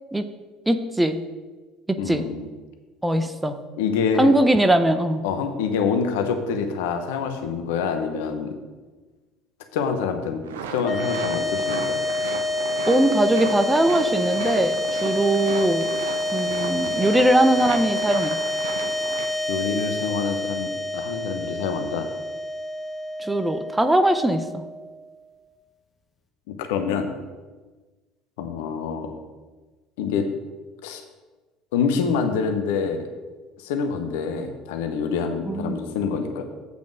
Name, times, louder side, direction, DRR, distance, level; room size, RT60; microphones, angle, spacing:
voice 1, 0.7-1.2 1.9-2.3 3.0-3.6 4.2-5.2 12.9-15.9 16.3-18.4 23.2-24.6 35.5-35.8, right 1 dB, 10° right, 10 dB, 0.6 m, -21 dB
voice 2, 2.0-2.5 3.8-4.3 5.2-8.5 9.7-10.4 10.7-12.0 19.5-22.1 26.7-27.1 28.4-29.1 30.0-30.3 30.8-31.0 31.7-33.1 33.6-36.4, left 6 dB, 65° left, 6 dB, 0.9 m, -26 dB
sound 1, 10.4-19.3, right 6 dB, 75° right, 0.6 m, -34 dB
sound 2, 10.8-25.2, left 2 dB, 30° left, 1.0 m, -28 dB
8.1 x 5.2 x 6.3 m, 1.3 s
figure-of-eight pair, 60°, 0 cm